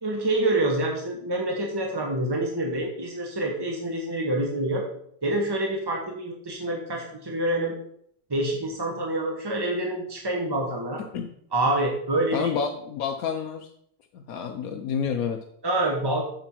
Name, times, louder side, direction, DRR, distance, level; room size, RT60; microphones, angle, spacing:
voice 1, 0.0-4.9 5.2-7.7 8.3-11.0 11.5-12.5 15.6-16.2, right 1 dB, 25° right, 0 dB, 0.6 m, -27 dB
voice 2, 12.3-13.7 14.1-15.4, left 6 dB, 70° left, 6 dB, 0.8 m, -29 dB
7.7 x 6.9 x 4.4 m, 0.69 s
omnidirectional pair, 2.2 m